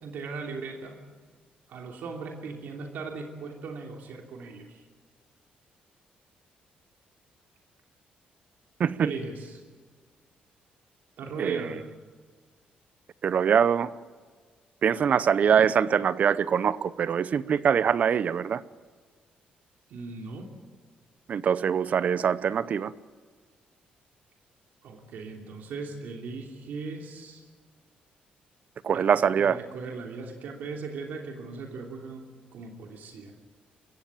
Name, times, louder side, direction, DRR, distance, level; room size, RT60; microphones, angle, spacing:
voice 1, 0.0-1.0 1.7-4.8 9.0-9.5 11.2-11.8 19.9-20.5 24.8-27.4 28.9-29.0 29.4-32.2 32.5-33.3, right 4 dB, 75° right, 2 dB, 3.0 m, -38 dB
voice 2, 11.4-11.8 13.2-13.9 14.8-18.6 21.3-22.9 28.8-29.6, right 7 dB, 55° right, 17 dB, 0.8 m, -23 dB
22.5 x 16.0 x 8.9 m, 1.6 s
cardioid pair, 110°, 3 cm